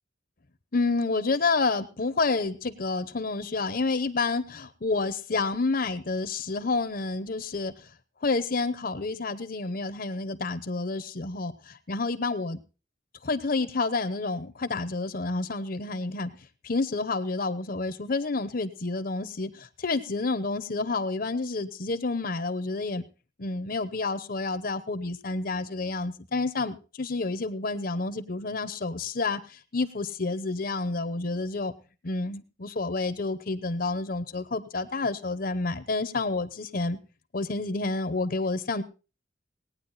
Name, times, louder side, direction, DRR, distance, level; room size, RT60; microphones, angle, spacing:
voice 1, 0.7-7.9 8.2-12.6 13.2-16.3 16.6-23.0 23.4-31.7 32.0-37.0 37.3-38.8, left 3 dB, 55° left, 12 dB, 0.9 m, -29 dB
18.0 x 9.5 x 4.1 m, 0.33 s
head